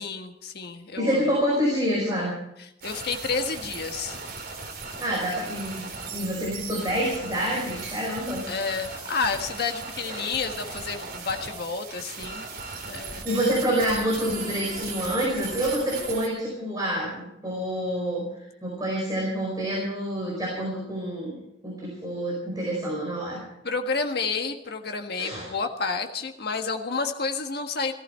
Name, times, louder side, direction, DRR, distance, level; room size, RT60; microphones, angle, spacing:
voice 1, 0.0-1.2 2.6-4.2 8.5-12.5 12.9-13.3 23.6-27.9, left 4 dB, 55° left, 4 dB, 1.6 m, -30 dB
voice 2, 1.0-2.3 5.0-8.4 10.0-10.3 13.2-18.2 18.6-21.4 21.6-23.4 25.1-25.5, equal, 20° right, -4 dB, 4.8 m, -27 dB
sound 1, 2.8-16.3, right 4 dB, 55° right, 3.6 m, -37 dB
18.0 x 15.0 x 4.4 m, 0.84 s
head